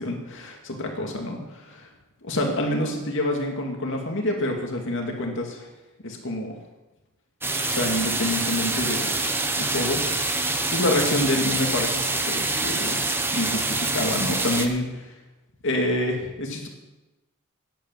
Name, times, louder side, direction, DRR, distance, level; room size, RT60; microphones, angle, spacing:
voice 1, 0.0-1.9 2.2-5.7 6.0-6.6 7.6-9.2 9.6-10.4 10.7-13.0 13.3-15.1 15.6-16.7, left 1 dB, 60° left, 1 dB, 2.4 m, -27 dB
sound 1, 7.4-14.7, right 2 dB, 10° right, 1.0 m, -26 dB
10.5 x 9.0 x 7.7 m, 1.0 s
head